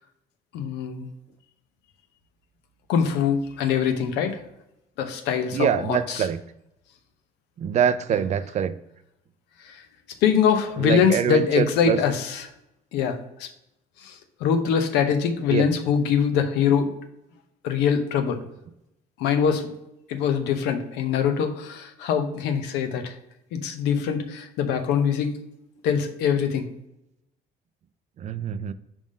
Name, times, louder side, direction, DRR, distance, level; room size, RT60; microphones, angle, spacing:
voice 1, 0.5-1.1 2.9-4.4 5.0-6.3 8.1-8.2 9.6-9.8 10.2-12.5 12.9-13.5 14.0-14.1 14.4-16.9 17.6-18.4 19.2-19.7 20.1-23.1 23.5-25.3 25.8-26.7, left 7 dB, 90° left, 7 dB, 0.8 m, -23 dB
voice 2, 5.5-6.4 7.6-8.7 10.8-12.0 15.5-15.6 28.2-28.7, right 8 dB, 45° right, 14 dB, 0.4 m, -24 dB
5.1 x 3.5 x 5.3 m, 0.86 s
cardioid pair, 110°, 17 cm